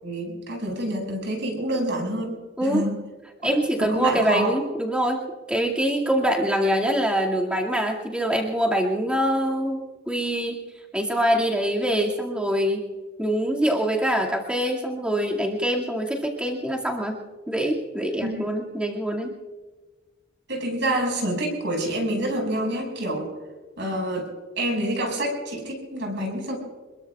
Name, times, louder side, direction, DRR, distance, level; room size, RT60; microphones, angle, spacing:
voice 1, 0.0-3.0 3.8-4.5 18.2-18.4 20.5-23.3 23.8-24.3 24.6-26.6, right 1 dB, 60° right, 1 dB, 5.9 m, -27 dB
voice 2, 2.6-2.9 3.4-10.6 10.9-12.9 13.2-17.2 17.5-19.3, equal, 5° right, -1 dB, 2.2 m, -24 dB
27.0 x 22.0 x 2.4 m, 1.4 s
head